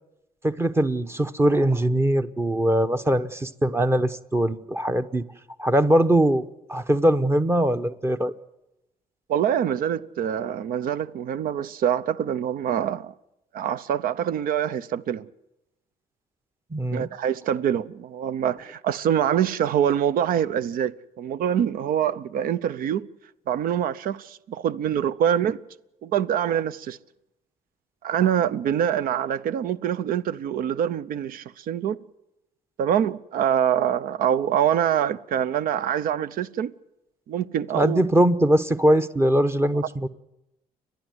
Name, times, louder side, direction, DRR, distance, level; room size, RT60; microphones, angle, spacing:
voice 1, 0.4-5.2 5.6-8.3 16.7-17.1 37.7-40.1, right 1 dB, 15° right, 1.0 m, -21 dB
voice 2, 9.3-13.1 13.5-15.3 16.9-23.1 23.5-25.6 26.0-27.0 28.0-32.0 32.8-36.7 37.3-38.0, right 9 dB, 70° right, 0.7 m, -25 dB
30.0 x 11.5 x 8.0 m
cardioid pair, 95°, 15 cm